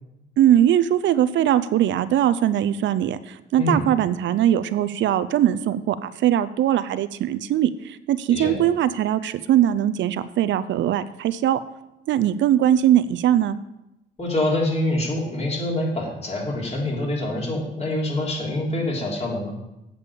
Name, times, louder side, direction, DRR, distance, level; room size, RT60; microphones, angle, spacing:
voice 1, 0.4-11.6 12.1-13.6, right 11 dB, 70° right, 14 dB, 0.5 m, -21 dB
voice 2, 14.2-19.6, left 1 dB, 30° left, -2 dB, 3.3 m, -25 dB
8.3 x 5.3 x 6.9 m, 0.90 s
cardioid pair, 90°, 20 cm